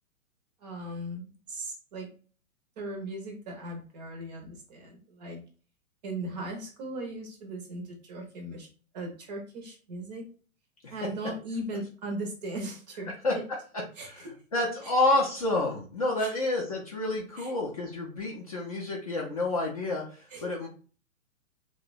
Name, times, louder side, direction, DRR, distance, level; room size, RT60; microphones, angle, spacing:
voice 1, 0.6-2.1 2.8-5.4 6.0-8.7 8.9-10.3 10.9-13.4 14.0-14.3 16.2-16.3 17.4-17.5 20.3-20.5, right 1 dB, 30° right, 3 dB, 0.5 m, -38 dB
voice 2, 14.0-20.7, left 2 dB, 30° left, -3 dB, 0.4 m, -29 dB
2.8 x 2.1 x 2.4 m, 0.39 s
figure-of-eight pair, 115°, 43 cm